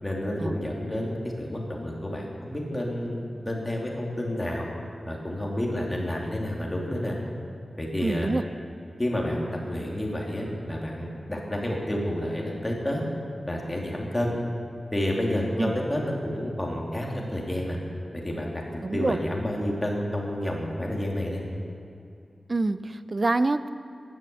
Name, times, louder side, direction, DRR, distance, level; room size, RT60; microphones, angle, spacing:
voice 1, 0.0-4.7 5.1-7.2 7.8-8.3 9.0-13.0 13.5-14.3 14.9-17.8 18.1-18.6 18.9-21.4, left 1 dB, 15° left, -2 dB, 3.1 m, -29 dB
voice 2, 8.0-8.4 15.6-15.7 18.8-19.2 22.5-23.7, right 2 dB, 35° right, 13 dB, 0.6 m, -26 dB
14.5 x 11.0 x 8.6 m, 2.6 s
wide cardioid pair, 105°, 0 cm